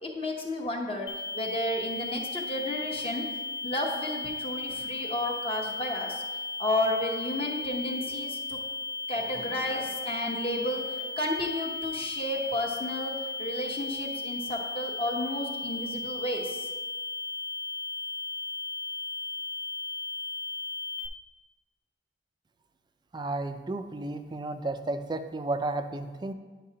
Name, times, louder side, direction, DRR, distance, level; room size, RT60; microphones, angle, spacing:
voice 1, 0.0-3.2 3.6-6.2 6.6-8.6 9.1-16.7, left 1 dB, 30° left, 0 dB, 0.8 m, -32 dB
sound 1, 1.1-21.1, left 3 dB, 75° left, 0.5 m, -36 dB
voice 2, 23.1-26.3, right 2 dB, 25° right, 9 dB, 0.4 m, -33 dB
9.5 x 5.8 x 2.8 m, 1.3 s
head